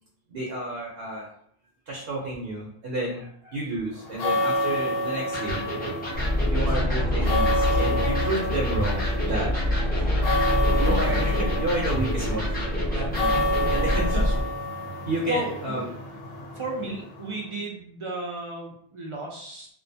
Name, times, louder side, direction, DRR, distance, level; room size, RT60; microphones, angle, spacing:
voice 1, 0.3-1.3 1.9-5.7 6.5-12.5 12.9-13.4 13.7-14.2 15.1-15.9, right 2 dB, 70° right, -3 dB, 0.8 m, -31 dB
sound 1, 4.0-17.5, left 1 dB, 70° left, 0.8 m, -29 dB
Electric guitar, 5.3-14.1, equal, 10° left, 0.5 m, -33 dB
sound 2, 6.1-14.4, left 1 dB, 30° left, 0.9 m, -26 dB
voice 2, 14.1-14.5 15.3-15.9 16.5-19.7, right 2 dB, 50° right, -2 dB, 0.3 m, -34 dB
2.5 x 2.2 x 2.6 m, 0.64 s
omnidirectional pair, 1.1 m